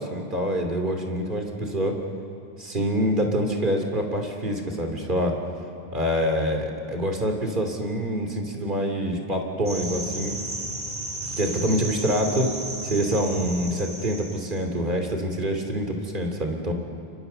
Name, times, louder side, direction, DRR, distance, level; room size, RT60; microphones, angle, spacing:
voice 1, 0.0-1.9 2.6-5.3 5.9-10.3 11.4-12.5 12.8-16.7, equal, 50° right, 3 dB, 3.0 m, -26 dB
sound 1, 9.7-14.6, right 1 dB, 75° right, 4.3 m, -34 dB
30.0 x 28.5 x 6.8 m, 2.7 s
omnidirectional pair, 1.1 m